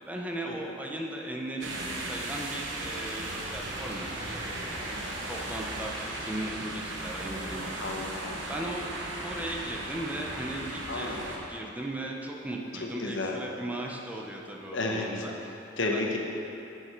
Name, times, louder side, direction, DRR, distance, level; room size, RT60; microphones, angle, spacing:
voice 1, 0.1-4.5 5.2-7.7 8.5-8.9 9.2-11.2 11.5-16.0, right 1 dB, 10° right, -1 dB, 0.7 m, -37 dB
sound 1, 1.6-11.4, right 1 dB, 85° right, 1.1 m, -36 dB
voice 2, 7.8-8.8 10.9-11.4 12.7-13.4 14.7-15.3 15.8-16.2, left 2 dB, 85° left, 1 dB, 1.0 m, -33 dB
8.1 x 7.5 x 4.5 m, 2.9 s
head